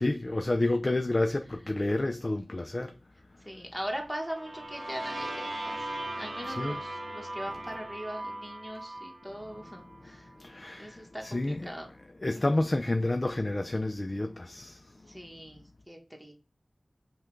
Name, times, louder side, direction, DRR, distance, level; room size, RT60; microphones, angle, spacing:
voice 1, 0.0-2.9 6.4-6.8 9.5-9.6 10.0-10.1 10.4-11.7 12.2-14.9, left 2 dB, 40° left, 0.4 m, -30 dB
voice 2, 3.4-10.3 10.7-11.9 15.0-16.3, equal, 5° right, 1.1 m, -40 dB
sound 1, 4.2-10.0, right 1 dB, 55° right, 0.7 m, -38 dB
5.6 x 2.3 x 3.2 m
wide cardioid pair, 55°, 0 cm